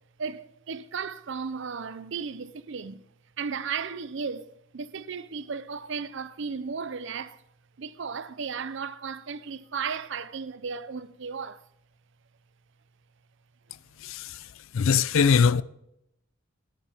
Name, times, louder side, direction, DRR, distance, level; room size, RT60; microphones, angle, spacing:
voice 1, 0.2-3.0 3.4-7.4 7.8-11.6, right 5 dB, 55° right, 0.5 m, -35 dB
voice 2, 14.0-14.4 14.7-15.6, left 6 dB, 65° left, 0.4 m, -21 dB
11.5 x 9.0 x 3.5 m
head